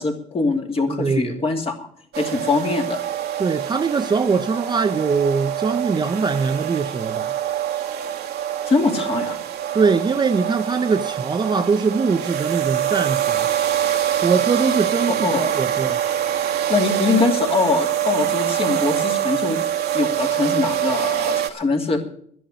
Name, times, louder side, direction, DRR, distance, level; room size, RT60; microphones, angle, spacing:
voice 1, 0.0-1.9 2.2-3.0 8.7-9.4 15.2-15.4 16.7-19.6 19.9-22.0, left 4 dB, 35° left, 2.8 m, -22 dB
voice 2, 0.9-1.4 3.4-7.3 9.7-13.5 14.2-16.0, right 5 dB, 25° right, 0.7 m, -22 dB
sound 1, 2.1-21.5, right 11 dB, 75° right, 1.4 m, -24 dB
11.0 x 10.5 x 7.9 m
cardioid pair, 110°, 17 cm